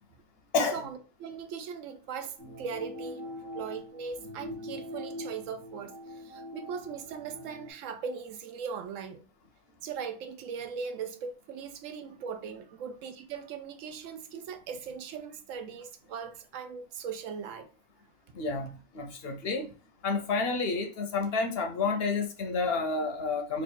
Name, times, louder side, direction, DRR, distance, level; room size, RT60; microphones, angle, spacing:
voice 1, 0.7-3.2 3.5-9.2 9.8-17.7, right 6 dB, 80° right, 1.0 m, -39 dB
sound 1, 2.4-7.7, left 1 dB, 50° right, 1.4 m, -43 dB
voice 2, 18.3-19.7 20.0-23.6, left 4 dB, 60° left, 0.7 m, -30 dB
3.2 x 2.4 x 4.2 m
omnidirectional pair, 1.3 m